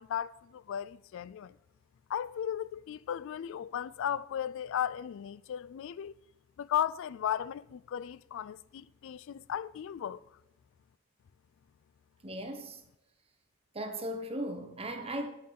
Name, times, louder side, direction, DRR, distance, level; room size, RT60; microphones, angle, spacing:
voice 1, 0.0-1.6 2.1-6.1 6.6-10.2, left 9 dB, 65° left, 0.3 m, -35 dB
voice 2, 12.2-12.8 13.7-15.3, right 1 dB, 30° right, 1.3 m, -37 dB
8.7 x 7.4 x 5.8 m
head